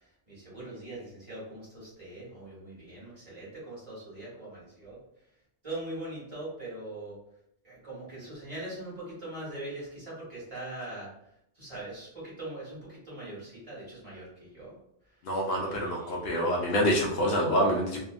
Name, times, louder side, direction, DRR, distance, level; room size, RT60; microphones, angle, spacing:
voice 1, 0.3-5.0 5.6-7.2 7.6-11.1 11.5-14.7 15.5-16.2, right 1 dB, 30° right, -8 dB, 1.4 m, -41 dB
voice 2, 15.2-18.0, equal, 65° left, -1 dB, 0.7 m, -26 dB
2.7 x 2.5 x 2.4 m, 0.76 s
omnidirectional pair, 1.1 m